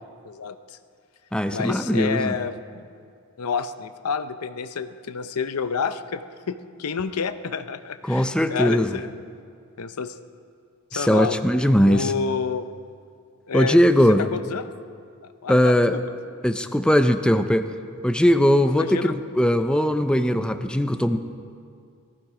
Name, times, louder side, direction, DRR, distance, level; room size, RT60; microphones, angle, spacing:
voice 1, 0.2-0.6 1.5-2.9 3.4-9.1 9.8-10.1 10.9-11.4 11.9-12.6 13.5-13.8 14.3-14.7 15.4-16.0 18.7-19.1, left 5 dB, 80° left, 11 dB, 0.6 m, -29 dB
voice 2, 1.3-2.3 8.0-8.9 10.9-12.1 13.5-14.3 15.5-16.0 16.4-17.7 18.0-21.2, equal, 5° left, 8 dB, 0.5 m, -19 dB
18.5 x 14.5 x 4.9 m, 2.3 s
head